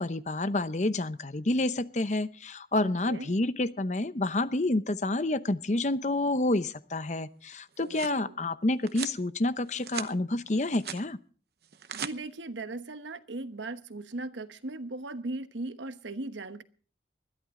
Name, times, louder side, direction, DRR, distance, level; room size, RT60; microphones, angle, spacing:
voice 1, 0.0-11.2, left 2 dB, 40° left, 0.8 m, -29 dB
voice 2, 2.8-3.3 7.8-8.3 11.9-16.6, right 2 dB, 90° right, 1.2 m, -38 dB
sound 1, 7.5-8.2 8.9-9.2 9.7-10.1 10.5-11.0 11.6-12.1, right 8 dB, 60° right, 0.9 m, -39 dB
21.0 x 13.5 x 3.7 m
head